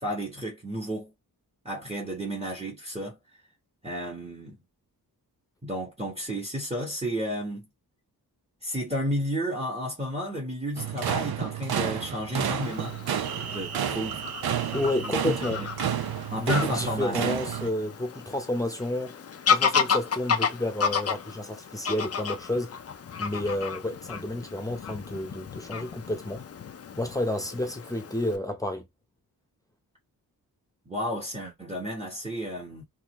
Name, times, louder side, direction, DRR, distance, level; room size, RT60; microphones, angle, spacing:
voice 1, 0.0-1.1 1.6-3.2 3.8-4.6 5.6-7.7 8.6-13.0 13.5-14.2 15.0-15.7 16.3-17.4 30.9-32.8, equal, 15° right, 1.3 m, -32 dB
sound 1, 10.8-17.7, right 9 dB, 75° right, 0.6 m, -31 dB
Fowl / Bird vocalization bird call bird song, 12.6-28.4, left 6 dB, 40° left, 0.5 m, -32 dB
voice 2, 14.7-15.6 16.4-19.2 19.5-22.7 23.2-26.4 27.0-28.9, left 1 dB, 10° left, 0.9 m, -30 dB
3.8 x 2.6 x 3.0 m
wide cardioid pair, 115°, 37 cm